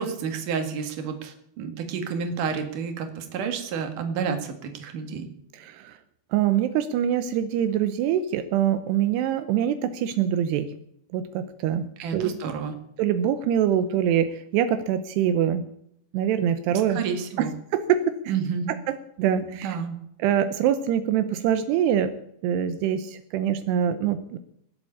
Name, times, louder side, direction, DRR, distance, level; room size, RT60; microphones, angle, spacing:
voice 1, 0.0-5.3 12.0-12.7 17.0-17.5 18.3-18.7 19.6-20.0, right 6 dB, 55° right, 6 dB, 3.2 m, -30 dB
voice 2, 5.5-6.0 6.3-10.7 11.1-11.8 12.1-12.3 13.0-15.6 16.1-17.0 17.4-18.0 18.9-19.7 20.2-22.1 22.4-24.4, right 9 dB, 85° right, 10 dB, 2.9 m, -24 dB
19.0 x 8.1 x 8.5 m, 0.74 s
omnidirectional pair, 4.8 m